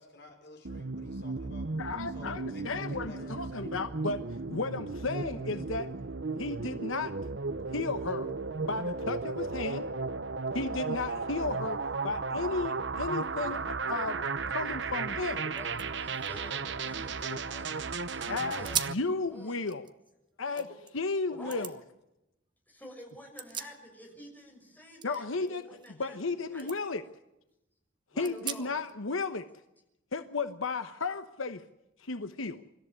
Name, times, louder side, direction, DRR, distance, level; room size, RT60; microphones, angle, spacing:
voice 1, 0.0-1.7 2.1-3.9 20.5-20.8 21.3-21.6, left 2 dB, 55° left, 4 dB, 5.3 m, -51 dB
sound 1, 0.6-18.9, right 4 dB, 60° right, 0.9 m, -35 dB
voice 2, 1.8-4.2 4.5-5.9 6.4-7.1 7.7-8.3 8.6-9.8 10.5-14.2 14.5-15.5 18.3-19.8 20.4-20.6 20.9-21.7 25.0-25.6 26.0-27.0 28.2-29.5 30.1-31.6 32.0-32.6, left 3 dB, 80° left, 10 dB, 1.1 m, -34 dB
sound 2, 15.2-15.3 15.5-17.7 18.1-18.2 18.6-19.1 19.5-20.9 21.5-21.8 23.1-24.2 24.5-26.3 26.6-26.8 27.3-27.4 28.2-28.9, right 7 dB, 20° right, 0.9 m, -40 dB
voice 3, 15.5-19.6 21.3-21.7 22.7-26.7 28.1-28.8, equal, 10° left, 1 dB, 6.2 m, -49 dB
25.5 x 14.0 x 9.7 m, 0.89 s
head